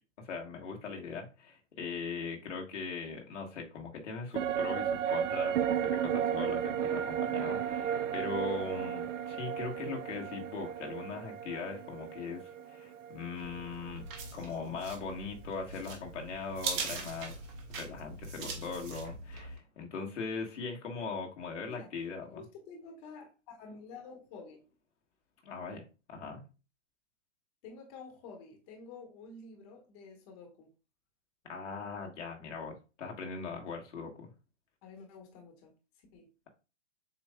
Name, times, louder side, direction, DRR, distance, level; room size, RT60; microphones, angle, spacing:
voice 1, 0.2-14.0 14.3-17.3 17.7-22.4 25.4-25.8 26.1-26.4 31.5-34.3, left 4 dB, 75° left, 1.4 m, -40 dB
sound 1, 4.3-13.9 14.2-14.3, right 9 dB, 85° right, 0.5 m, -34 dB
sound 2, 13.4-19.6, right 4 dB, 20° right, 0.5 m, -41 dB
voice 2, 22.3-24.6 27.6-30.7 34.8-35.7 36.1-36.5, left 4 dB, 35° left, 1.3 m, -50 dB
7.1 x 2.5 x 2.2 m
hypercardioid pair, 135°, 37 cm